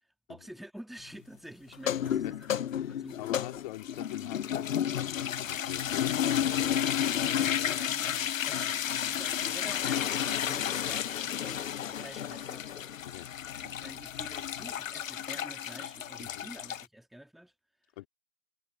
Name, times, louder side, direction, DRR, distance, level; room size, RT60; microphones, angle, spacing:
voice 1, 0.3-2.5 3.0-3.2 7.3-12.7 13.5-17.5, equal, ahead, 2.5 m, -48 dB
sound 1, 1.7-16.8, left 9 dB, 80° left, 0.5 m, -32 dB
voice 2, 2.0-7.8 13.0-13.3 16.2-16.5 18.0-18.1, left 18 dB, 35° left, 3.6 m, -44 dB
figure-of-eight pair, 130°, 39 cm